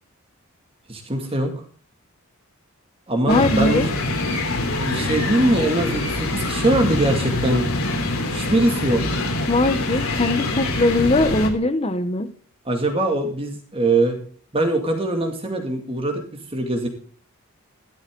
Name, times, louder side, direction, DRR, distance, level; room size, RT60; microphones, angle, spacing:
voice 1, 0.9-1.5 3.1-3.9 4.8-7.7 8.3-9.0 12.7-14.2 14.5-16.2 16.5-16.9, right 1 dB, 25° right, 2.2 m, -22 dB
sound 1, 3.3-11.5, left 2 dB, 75° left, 3.3 m, -24 dB
voice 2, 3.3-3.9 9.5-12.3, left 2 dB, 30° left, 0.8 m, -20 dB
14.5 x 12.0 x 3.7 m
head